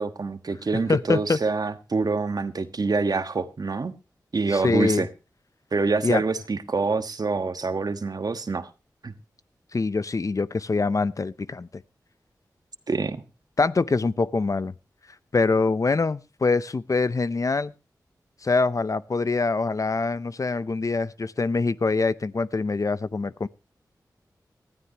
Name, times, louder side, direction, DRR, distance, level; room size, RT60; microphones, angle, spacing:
voice 1, 0.0-3.9 4.3-5.1 5.7-8.7 9.0-9.1 12.9-13.2, right 4 dB, 60° right, 10 dB, 1.3 m, -26 dB
voice 2, 0.9-1.4 4.5-5.1 6.0-6.2 9.7-11.8 13.6-14.7 15.3-17.7 18.4-23.5, left 3 dB, 50° left, 17 dB, 0.7 m, -24 dB
19.0 x 13.5 x 2.9 m, 0.30 s
cardioid pair, 45°, 7 cm